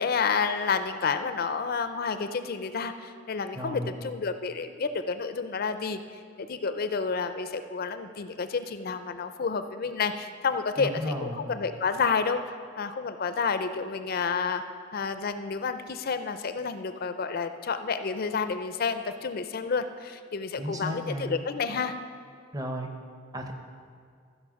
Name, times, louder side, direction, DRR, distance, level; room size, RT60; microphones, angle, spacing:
voice 1, 0.0-12.4 12.8-14.6 14.9-21.9, left 5 dB, 50° left, 10 dB, 0.5 m, -30 dB
voice 2, 3.5-3.9 10.8-11.5 20.6-21.3 22.5-22.9 23.3-23.5, equal, 20° right, 4 dB, 0.8 m, -33 dB
14.0 x 5.2 x 6.3 m, 2.2 s
head